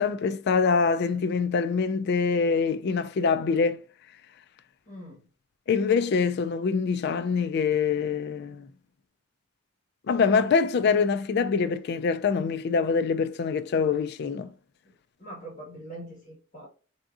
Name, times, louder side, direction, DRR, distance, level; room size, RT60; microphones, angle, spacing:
voice 1, 0.0-3.8 5.7-8.7 10.1-14.5, left 5 dB, 55° left, 0.3 m, -24 dB
voice 2, 4.9-5.3 14.8-16.7, right 1 dB, 30° left, 1.4 m, -43 dB
3.5 x 2.8 x 2.4 m
head